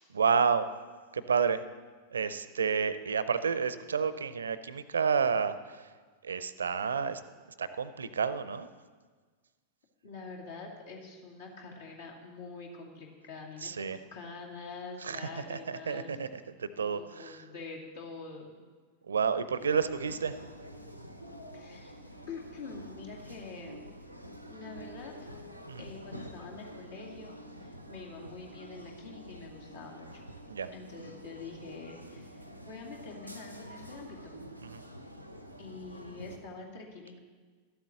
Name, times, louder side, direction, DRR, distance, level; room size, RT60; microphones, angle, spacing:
voice 1, 0.1-0.7 1.1-1.6 2.1-5.9 6.2-7.2 7.6-8.7 13.6-14.0 15.0-17.4 19.1-20.4 25.7-25.9 30.5-30.7 34.6-34.8, right 6 dB, 70° right, 14 dB, 0.5 m, -30 dB
voice 2, 10.0-16.2 16.7-18.5 21.5-21.9 22.3-23.9 24.5-25.1 25.8-30.2 30.7-34.4 35.6-37.2, left 4 dB, 65° left, -2 dB, 2.3 m, -45 dB
sound 1, 19.6-36.4, equal, 90° left, 0.8 m, -48 dB
12.5 x 8.0 x 7.0 m, 1.5 s
figure-of-eight pair, 90°, 0 cm